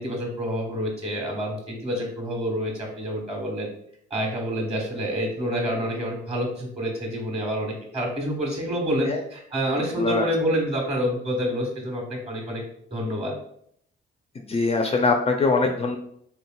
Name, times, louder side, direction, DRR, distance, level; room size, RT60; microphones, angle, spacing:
voice 1, 0.0-3.7 4.1-12.6 12.9-13.3, equal, 30° right, 0 dB, 1.2 m, -28 dB
voice 2, 14.5-16.0, left 3 dB, 30° left, 3 dB, 0.3 m, -22 dB
3.4 x 2.8 x 2.2 m, 0.69 s
cardioid pair, 90°, 20 cm